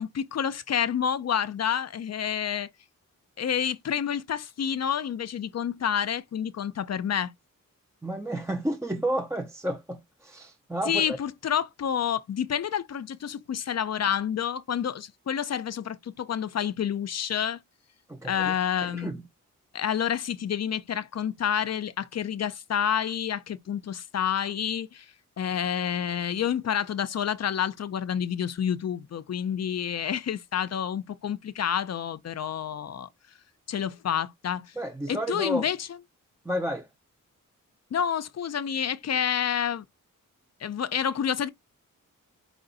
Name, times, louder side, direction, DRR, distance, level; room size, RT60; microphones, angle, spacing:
voice 1, 0.0-2.7 3.4-7.3 10.9-17.6 18.2-19.1 19.7-25.1 25.4-33.1 33.7-34.7 35.1-35.8 37.9-39.8 40.6-41.5, left 8 dB, 50° left, 0.5 m, -29 dB
voice 2, 8.0-11.2 18.1-19.2 34.8-35.7 36.4-36.9, right 1 dB, 10° right, 0.5 m, -31 dB
4.8 x 2.5 x 3.9 m
cardioid pair, 85°, 33 cm